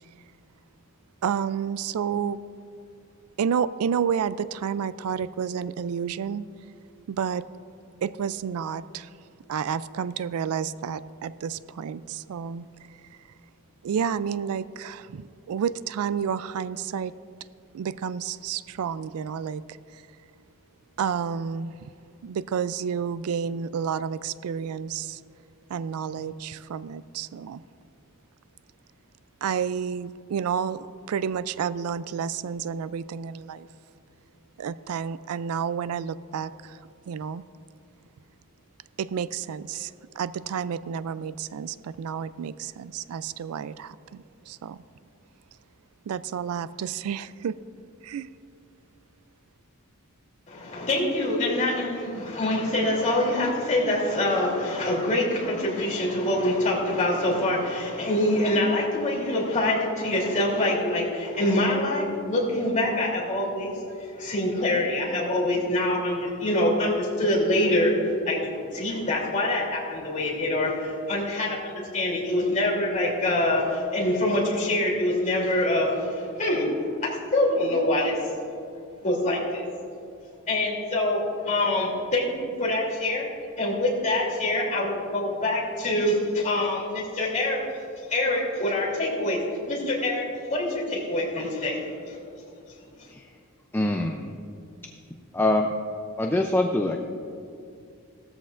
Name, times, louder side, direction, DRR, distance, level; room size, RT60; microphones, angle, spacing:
voice 1, 1.2-2.4 3.4-6.5 7.1-7.5 8.0-9.1 9.5-12.9 13.8-17.1 17.7-20.0 21.0-21.9 22.2-25.2 25.7-27.6 29.4-33.7 34.6-36.8 37.1-37.4 39.0-44.8 46.1-47.6 48.0-48.3, right 7 dB, 75° right, 16 dB, 0.3 m, -30 dB
voice 2, 50.5-76.7 77.0-78.2 79.0-79.7 80.5-81.2 81.5-83.3 83.6-87.6 88.1-89.4 89.7-91.8 92.1-92.2, left 1 dB, 35° left, -4 dB, 2.9 m, -25 dB
voice 3, 93.7-94.3 95.3-95.7 96.2-97.0, left 1 dB, 10° left, 3 dB, 0.4 m, -24 dB
17.0 x 13.5 x 2.5 m, 2.5 s
head